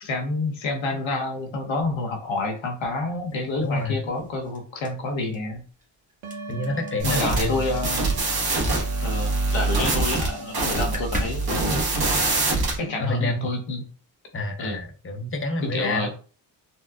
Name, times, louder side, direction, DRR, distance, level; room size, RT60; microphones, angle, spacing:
voice 1, 0.0-5.6 7.0-8.1 9.0-12.0 12.8-13.9 14.6-14.8 15.7-16.1, left 2 dB, 70° left, 2 dB, 1.0 m, -28 dB
sound 1, 2.8-9.4 9.7-10.2 10.5-10.6 10.7-13.1, equal, 15° right, 1.3 m, -41 dB
voice 2, 3.6-4.0 6.5-7.6 13.0-13.5 14.3-16.1, left 2 dB, 25° left, 5 dB, 0.7 m, -27 dB
sound 2, 6.2-11.0, right 2 dB, 90° right, 0.7 m, -39 dB
sound 3, 7.0-12.8, right 3 dB, 50° right, 1.3 m, -24 dB
4.1 x 2.2 x 2.3 m, 0.38 s
cardioid pair, 65°, 48 cm